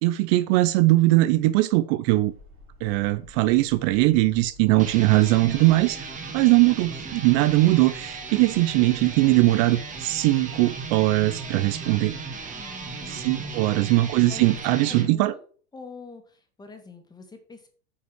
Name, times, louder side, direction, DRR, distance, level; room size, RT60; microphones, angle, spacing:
voice 1, 0.0-2.3 2.8-6.1 6.3-12.2 13.1-15.3, right 18 dB, 55° right, 0.7 m, -20 dB
sound 1, 2.2-14.6, left 2 dB, 35° right, 4.2 m, -51 dB
sound 2, 4.7-15.1, right 4 dB, 20° right, 1.9 m, -36 dB
voice 2, 12.5-13.8 14.3-14.6 14.9-15.4 15.7-17.7, left 4 dB, 10° left, 2.1 m, -44 dB
9.7 x 5.5 x 6.4 m
supercardioid pair, 145°, 34 cm